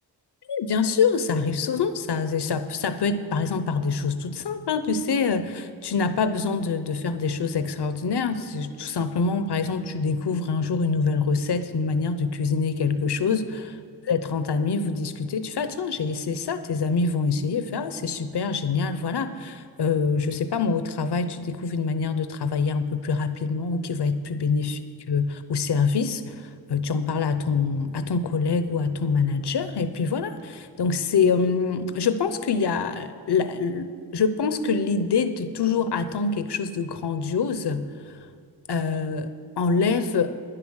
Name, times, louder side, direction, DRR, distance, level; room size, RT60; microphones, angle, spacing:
voice 1, 0.5-13.7 14.1-24.8 25.1-38.1 38.7-40.3, left 5 dB, 75° left, 11 dB, 0.8 m, -25 dB
11.0 x 10.0 x 6.3 m, 2.3 s
wide cardioid pair, 95°, 41 cm